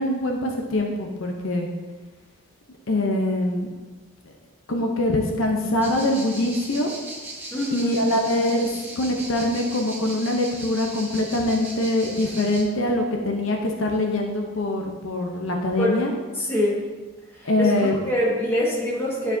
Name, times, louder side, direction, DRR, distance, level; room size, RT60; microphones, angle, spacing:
voice 1, 0.0-1.7 2.9-3.7 4.7-6.9 7.7-8.7 9.0-16.1 17.4-18.0, left 1 dB, 65° left, 1 dB, 0.7 m, -23 dB
sound 1, 5.8-12.6, right 2 dB, 10° right, 1.1 m, -38 dB
voice 2, 7.5-7.9 15.8-16.0 16.3-16.8 17.3-17.7 18.0-19.4, left 1 dB, 10° left, -6 dB, 1.6 m, -24 dB
11.0 x 4.7 x 2.7 m, 1.3 s
head